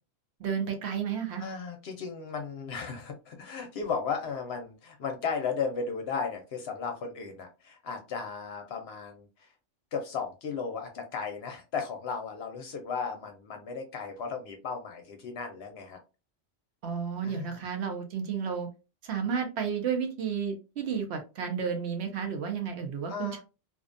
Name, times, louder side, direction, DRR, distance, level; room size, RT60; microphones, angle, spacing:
voice 1, 0.4-1.4 16.8-18.7 19.0-23.4, right 7 dB, 65° right, 4 dB, 0.8 m, -32 dB
voice 2, 1.4-9.5 9.9-16.0 17.2-17.6 23.1-23.4, left 5 dB, 65° left, 4 dB, 0.8 m, -35 dB
2.5 x 2.2 x 2.4 m, 0.29 s
omnidirectional pair, 1.3 m